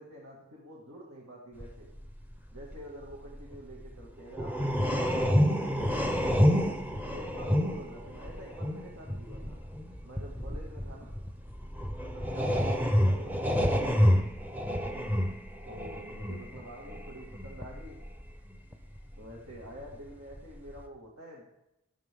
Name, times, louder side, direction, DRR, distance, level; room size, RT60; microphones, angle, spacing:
voice 1, 0.0-1.9 2.5-6.1 7.0-9.7 10.0-11.2 12.1-14.3 15.6-18.0 19.2-21.4, equal, 65° right, -4 dB, 2.3 m, -47 dB
sound 1, 1.6-1.7 2.0-4.0 4.3-20.4 20.7-20.8, equal, 10° right, 0.9 m, -29 dB
13.0 x 11.5 x 3.8 m, 0.86 s
head